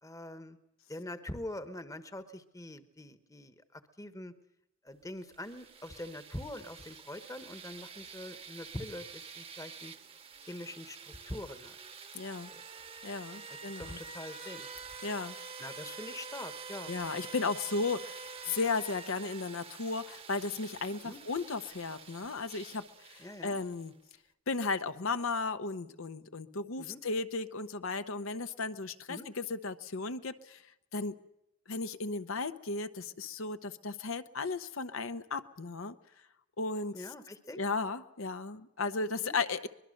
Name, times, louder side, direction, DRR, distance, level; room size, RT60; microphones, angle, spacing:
voice 1, 0.0-0.6 0.9-4.3 4.8-9.9 10.5-11.8 12.5-12.6 13.8-14.7 15.6-16.9 18.5-18.6 21.0-21.2 23.2-23.6 26.8-27.0 29.1-29.3 36.9-37.6 39.2-39.4, left 1 dB, 15° left, 10 dB, 1.1 m, -44 dB
sound 1, 5.2-23.9, right 5 dB, 25° right, 1.1 m, -47 dB
voice 2, 12.1-12.5 13.0-14.0 15.0-15.3 16.9-22.8 23.1-23.9 24.5-30.6 30.9-31.1 31.7-35.9 36.6-37.1 37.6-39.7, left 3 dB, 70° left, 10 dB, 0.9 m, -35 dB
24.0 x 21.0 x 6.6 m, 0.85 s
head